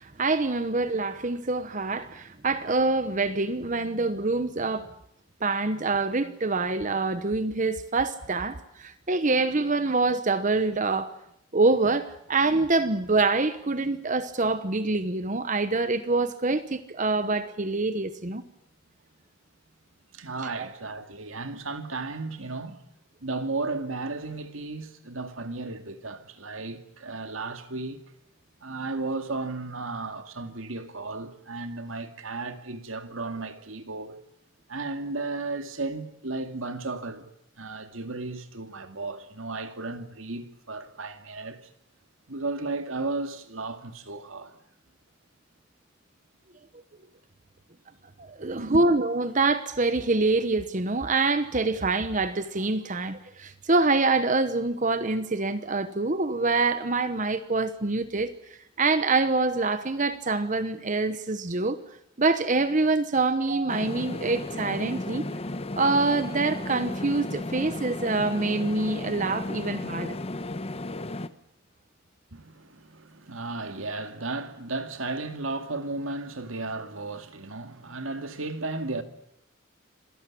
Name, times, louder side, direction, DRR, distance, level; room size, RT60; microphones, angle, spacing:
voice 1, 0.0-4.9 5.4-11.1 11.5-18.4 20.6-20.7 48.2-58.3 58.8-61.8 62.2-65.2 65.8-70.2, right 3 dB, 40° right, 1.0 m, -25 dB
voice 2, 20.1-22.8 23.2-28.1 28.6-34.2 34.7-37.3 37.6-41.6 42.3-44.6 48.6-48.8 72.3-79.0, right 3 dB, 85° right, 2.2 m, -34 dB
sound 1, 63.7-71.3, left 2 dB, 30° left, 1.0 m, -34 dB
26.0 x 18.0 x 8.5 m
head